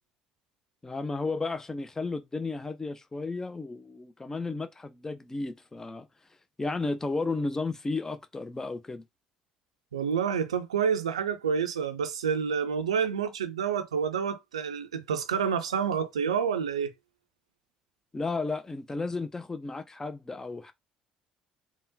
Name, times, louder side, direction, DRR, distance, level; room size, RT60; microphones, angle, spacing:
voice 1, 0.8-6.1 6.6-9.0 18.1-20.7, left 3 dB, 15° left, 0.4 m, -33 dB
voice 2, 9.9-16.9, right 7 dB, 80° right, 0.4 m, -28 dB
3.6 x 2.1 x 2.5 m
figure-of-eight pair, 50°, 3 cm